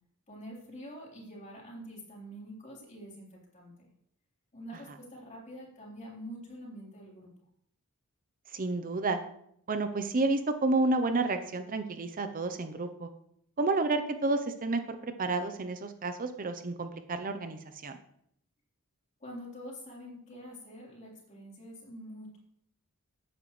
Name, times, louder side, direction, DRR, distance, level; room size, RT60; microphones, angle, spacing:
voice 1, 0.3-3.9 4.5-7.3 19.2-22.4, equal, 35° left, -3 dB, 3.7 m, -46 dB
voice 2, 8.5-9.2 9.7-13.1 13.6-18.0, right 3 dB, 40° right, 8 dB, 0.7 m, -30 dB
13.5 x 9.3 x 3.2 m, 0.70 s
head